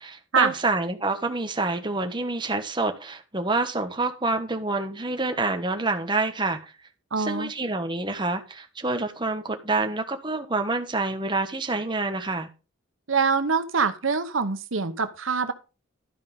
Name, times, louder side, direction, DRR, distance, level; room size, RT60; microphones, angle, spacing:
voice 1, 0.0-6.7 7.2-12.5, right 3 dB, 25° right, 1.3 m, -27 dB
voice 2, 7.1-7.5 13.1-15.5, right 5 dB, 85° right, 1.0 m, -24 dB
12.5 x 5.4 x 5.4 m
head